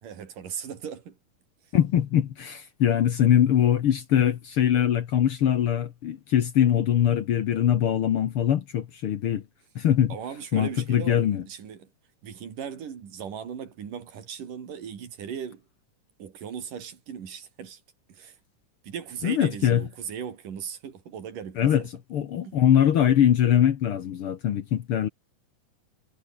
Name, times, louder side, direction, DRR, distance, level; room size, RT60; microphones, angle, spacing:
voice 1, 0.0-1.2 10.1-11.9 12.2-15.6 16.2-17.8 18.1-18.4 18.8-21.9 22.4-22.6, right 7 dB, 80° right, 4.6 m, -38 dB
voice 2, 1.7-9.4 9.7-10.1 10.5-11.4 19.2-19.8 21.6-21.8 22.1-25.1, left 10 dB, 60° left, 1.6 m, -22 dB
omnidirectional pair, 3.7 m